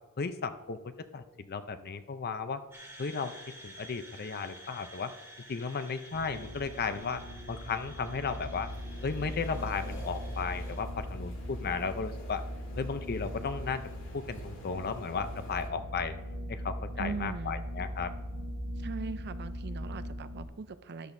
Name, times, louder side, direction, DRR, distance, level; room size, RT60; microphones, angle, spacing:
voice 1, 0.2-0.8 1.1-2.6 3.0-3.3 3.6-5.1 5.5-7.2 7.5-8.7 9.0-12.4 12.7-13.8 14.1-16.2 16.5-18.1, left 5 dB, 45° left, 10 dB, 0.6 m, -34 dB
sound 1, 2.7-10.8, equal, 10° right, 2.2 m, -51 dB
sound 2, 6.1-20.4, equal, 85° right, 1.3 m, -40 dB
sound 3, 8.7-15.7, equal, 60° left, 2.1 m, -49 dB
voice 2, 17.0-17.7 18.8-21.1, right 4 dB, 50° right, 12 dB, 0.5 m, -40 dB
13.0 x 10.0 x 2.7 m, 1.2 s
head